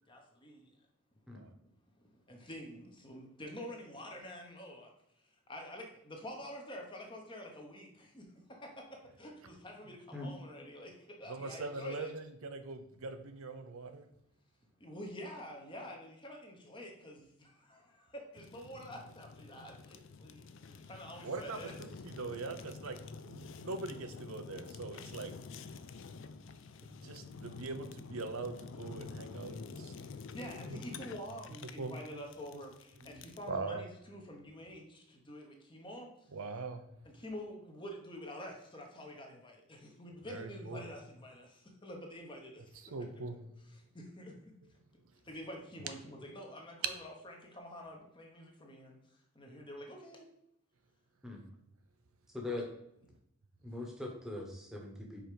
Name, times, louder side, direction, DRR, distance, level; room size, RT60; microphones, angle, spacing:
voice 1, 0.1-0.6 2.3-4.9 5.5-8.7 9.2-10.9 11.2-12.1 14.8-17.8 18.3-20.4 20.7-21.8 30.3-36.1 37.2-41.5 41.8-42.6 43.9-44.3 45.3-49.0 49.4-50.3, equal, 20° left, 2 dB, 1.0 m, -47 dB
voice 2, 11.3-14.1 21.2-23.0 23.3-25.3 27.0-29.9 30.7-30.8 31.8-32.0 32.5-32.6 33.5-33.8 36.3-36.8 40.3-40.8 42.9-43.4, right 3 dB, 80° right, 8 dB, 0.6 m, -42 dB
Fire, 18.3-33.5, left 4 dB, 60° left, 0.4 m, -49 dB
voice 3, 52.3-52.7 53.6-55.2, left 2 dB, ahead, 0 dB, 1.1 m, -41 dB
5.0 x 4.4 x 5.0 m, 0.78 s
head